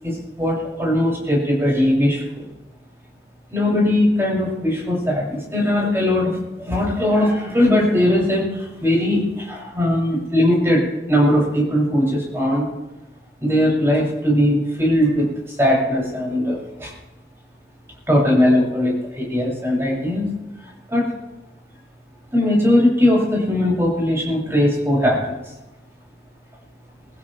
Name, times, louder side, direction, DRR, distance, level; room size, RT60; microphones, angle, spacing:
voice 1, 0.0-2.5 3.5-10.8 11.1-12.7 13.4-15.3 15.6-16.9 18.1-20.2 20.9-21.0 22.3-25.3, left 1 dB, 15° right, -4 dB, 7.3 m, -19 dB
24.5 x 15.0 x 3.5 m, 1.0 s
head